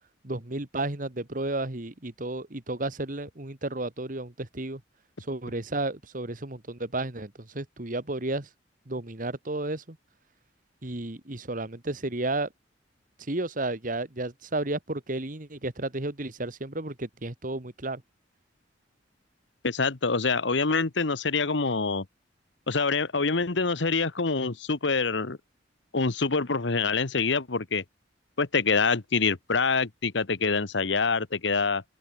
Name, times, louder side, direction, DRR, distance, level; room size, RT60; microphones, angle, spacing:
voice 1, 0.2-4.8 5.3-8.5 8.9-10.0 10.8-12.5 13.3-18.0, right 2 dB, 45° right, 1.8 m, -32 dB
voice 2, 19.6-22.0 22.7-25.4 25.9-27.8 28.4-31.8, left 4 dB, 75° left, 1.2 m, -26 dB
open air
head